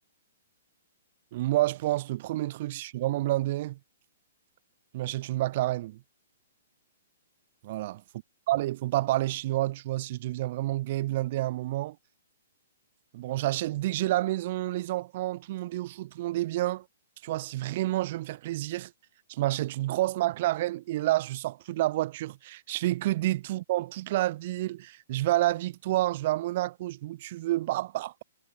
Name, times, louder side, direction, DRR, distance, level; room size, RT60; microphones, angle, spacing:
voice 1, 1.3-3.8 4.9-6.0 7.6-8.0 8.5-12.0 13.1-16.9 17.2-18.9 19.3-28.2, right 16 dB, 45° right, 5.9 m, -29 dB
figure-of-eight pair, 120°, 0 cm